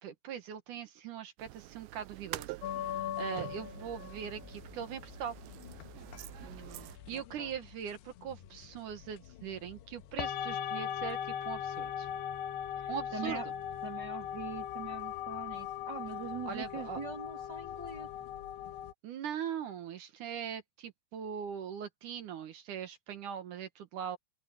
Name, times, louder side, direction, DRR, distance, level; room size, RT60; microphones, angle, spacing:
voice 1, 0.0-2.5 2.8-5.4 7.1-12.1 12.9-13.4 16.5-17.0 19.0-24.2, right 8 dB, 65° right, 2.3 m, -41 dB
sound 1, 1.4-7.0, right 18 dB, 85° right, 2.2 m, -47 dB
sound 2, 2.6-18.9, left 10 dB, 80° left, 3.2 m, -40 dB
voice 2, 6.4-7.5 12.8-13.5 13.8-18.1, right 5 dB, 30° right, 2.8 m, -43 dB
open air
omnidirectional pair, 4.8 m